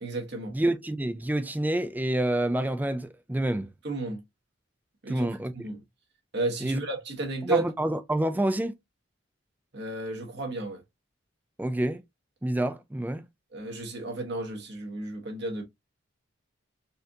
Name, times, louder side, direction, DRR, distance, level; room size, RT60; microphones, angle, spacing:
voice 1, 0.0-0.5 3.8-4.2 5.0-5.3 5.6-5.8 6.3-7.7 9.7-10.8 13.5-15.6, right 2 dB, 55° right, 1.2 m, -32 dB
voice 2, 0.5-3.7 5.1-5.5 6.6-6.8 7.4-8.7 11.6-12.0 12.4-13.2, right 1 dB, 10° right, 0.3 m, -28 dB
4.3 x 2.5 x 2.6 m
head